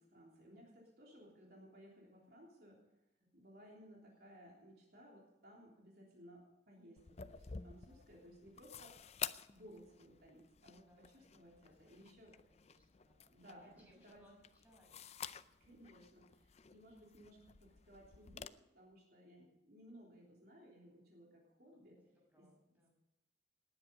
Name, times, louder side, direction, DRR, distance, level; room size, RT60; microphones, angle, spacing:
voice 1, 0.0-2.9 3.3-9.1 9.5-12.3 13.3-13.6 14.0-14.2 15.6-22.0 22.4-22.5, equal, 55° right, -2 dB, 3.4 m, -60 dB
voice 2, 3.2-3.5 7.8-8.4 10.9-11.3 11.6-15.1 19.3-19.5 21.6-22.9, equal, 10° right, -2 dB, 6.5 m, -69 dB
sound 1, 7.0-18.5, left 8 dB, 35° left, 0.5 m, -51 dB
19.0 x 9.9 x 5.2 m, 0.96 s
head